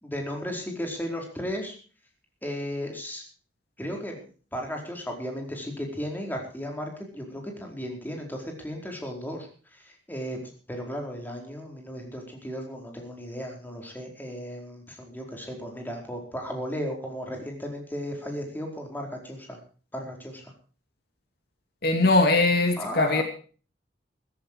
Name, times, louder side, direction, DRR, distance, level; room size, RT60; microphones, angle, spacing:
voice 1, 0.0-1.7 2.4-3.2 3.8-4.3 4.5-9.5 10.1-10.4 10.7-19.6 19.9-20.5 22.8-23.2, equal, 10° left, 1 dB, 4.6 m, -35 dB
voice 2, 21.8-23.2, left 2 dB, 60° left, 5 dB, 2.5 m, -21 dB
15.5 x 15.0 x 4.8 m, 0.39 s
head